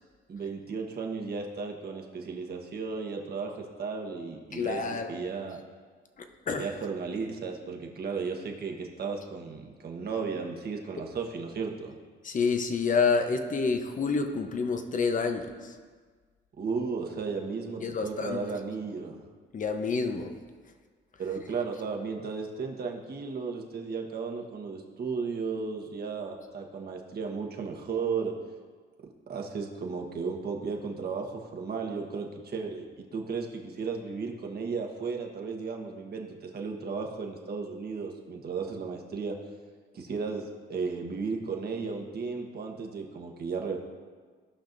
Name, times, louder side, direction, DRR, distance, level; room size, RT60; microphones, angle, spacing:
voice 1, 0.3-4.8 5.1-5.6 6.6-12.0 16.6-19.2 21.2-28.3 29.3-39.4 39.9-43.8, right 5 dB, 50° right, 1 dB, 1.3 m, -34 dB
voice 2, 4.5-5.1 6.2-6.7 12.2-15.8 17.8-18.4 19.5-20.3, left 5 dB, 40° left, 6 dB, 0.9 m, -28 dB
16.5 x 5.7 x 2.7 m, 1.5 s
cardioid pair, 90°, 20 cm